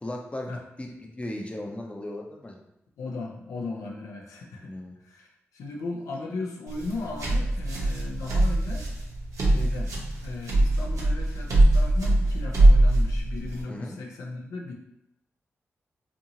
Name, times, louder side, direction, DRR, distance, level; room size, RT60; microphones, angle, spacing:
voice 1, 0.0-2.6 4.6-5.0 13.7-14.0, left 1 dB, 20° left, 1 dB, 0.6 m, -37 dB
voice 2, 3.0-4.7 5.0-8.9 9.4-9.9 10.2-14.7, left 3 dB, 85° left, -2 dB, 0.4 m, -36 dB
sound 1, 6.7-13.6, right 1 dB, 75° right, 0.8 m, -22 dB
2.7 x 2.6 x 2.7 m, 0.83 s
supercardioid pair, 45°, 5 cm